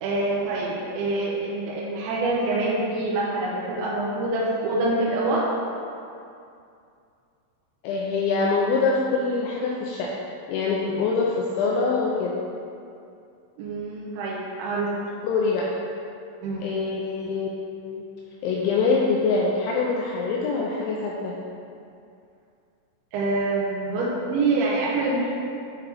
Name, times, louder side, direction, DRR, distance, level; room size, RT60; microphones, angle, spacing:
voice 1, 0.0-5.4 13.6-14.9 16.4-16.7 23.1-25.3, right 2 dB, 80° right, -7 dB, 2.9 m, -25 dB
voice 2, 7.8-10.1 10.5-12.3 15.2-15.6 16.6-17.5 17.8-18.0 18.4-21.3, left 4 dB, 85° left, -3 dB, 2.7 m, -24 dB
8.6 x 4.6 x 3.3 m, 2.5 s
omnidirectional pair, 5.7 m